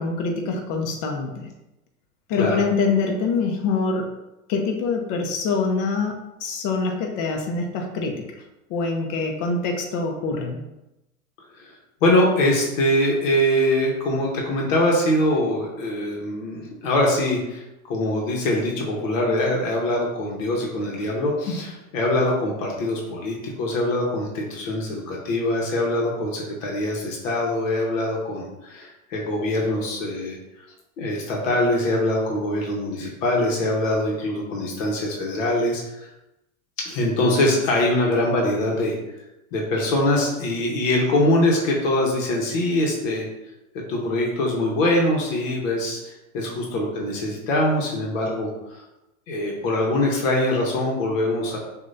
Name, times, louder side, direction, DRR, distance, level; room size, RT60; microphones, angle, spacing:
voice 1, 0.0-1.4 2.3-4.1 4.5-8.2 8.7-10.6 21.5-21.6, left 4 dB, 45° left, 2 dB, 1.0 m, -25 dB
voice 2, 12.0-30.4 31.0-36.1 36.8-38.9 39.5-43.3 43.9-48.8 49.3-51.6, left 1 dB, 60° left, -1 dB, 1.3 m, -23 dB
6.2 x 2.7 x 2.7 m, 0.96 s
hypercardioid pair, 100°, 43 cm